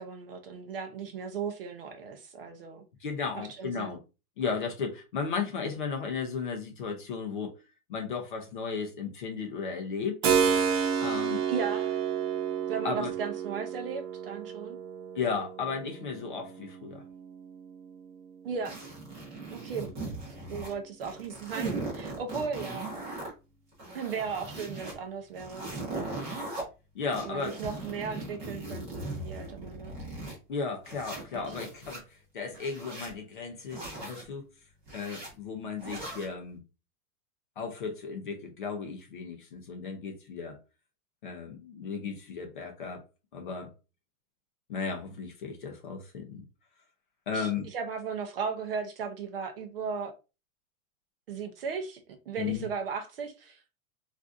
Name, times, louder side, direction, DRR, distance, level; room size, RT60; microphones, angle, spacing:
voice 1, 0.0-2.8 3.3-4.0 11.5-12.0 12.7-14.8 18.4-18.8 19.5-19.9 20.3-22.9 23.9-25.7 27.2-29.9 31.3-31.5 47.3-50.1 51.3-53.6, right 6 dB, 45° right, 0.4 m, -36 dB
voice 2, 3.0-4.0 4.4-7.5 7.9-10.2 11.0-11.4 12.8-13.1 15.1-17.0 26.9-27.6 30.5-32.0 32.3-34.5 34.9-36.6 37.6-40.6 41.2-43.0 43.3-43.7 44.7-46.5 47.3-47.7 52.4-52.7, left 5 dB, 40° left, 0.4 m, -35 dB
Keyboard (musical), 10.2-18.8, right 7 dB, 65° right, 0.8 m, -31 dB
sound 1, 18.7-20.7 21.0-23.3 23.7-24.9 25.3-26.6 27.1-30.4 30.8-32.0 32.5-33.1 33.7-34.2 34.8-35.3 35.8-36.3, right 2 dB, 15° right, 0.9 m, -39 dB
3.7 x 2.5 x 2.3 m
supercardioid pair, 180°, 44 cm